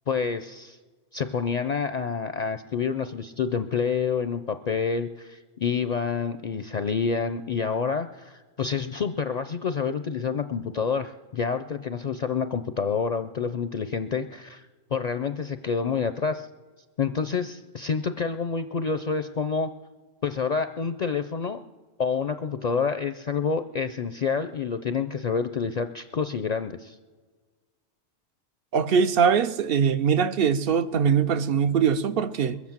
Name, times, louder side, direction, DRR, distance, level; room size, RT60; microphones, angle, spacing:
voice 1, 0.1-0.8 1.1-16.5 17.0-19.7 20.2-21.6 22.0-27.0, left 5 dB, 50° left, 0.5 m, -28 dB
voice 2, 28.7-32.6, right 7 dB, 65° right, 0.8 m, -22 dB
22.0 x 8.2 x 7.3 m
omnidirectional pair, 1.1 m